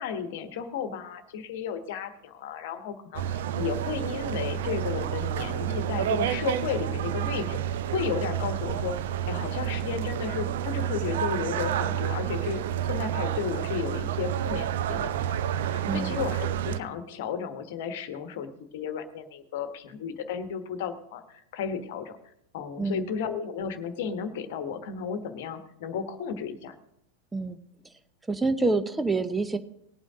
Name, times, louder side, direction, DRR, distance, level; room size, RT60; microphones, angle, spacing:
voice 1, 0.0-7.6 7.9-9.0 9.3-21.2 21.5-22.2 22.5-26.7, left 7 dB, 50° left, 9 dB, 1.3 m, -33 dB
sound 1, 3.1-16.8, right 10 dB, 55° right, 0.6 m, -29 dB
voice 2, 15.9-16.2 22.8-23.1 27.3-27.6 28.3-29.6, right 3 dB, 10° right, 11 dB, 0.8 m, -27 dB
19.0 x 8.8 x 3.7 m, 0.76 s
figure-of-eight pair, 90°, 0 cm